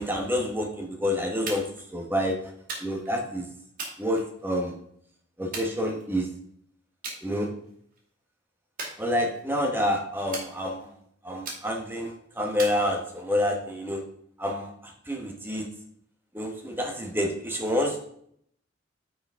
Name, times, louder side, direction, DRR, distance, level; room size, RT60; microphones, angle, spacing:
voice 1, 0.0-1.7 1.9-2.4 2.8-3.4 4.0-4.7 5.4-6.3 7.2-7.5 9.0-10.9 11.2-14.0 14.4-15.7 16.3-18.0, left 1 dB, 10° right, 2 dB, 1.0 m, -28 dB
sound 1, 1.5-1.9 2.7-3.2 3.8-4.7 5.5-6.3 7.0-7.2 7.6-8.0 8.8-9.6 10.3-10.9 11.4-12.0 12.6-13.4, right 3 dB, 45° right, 2.4 m, -39 dB
9.8 x 4.8 x 3.6 m, 0.67 s
head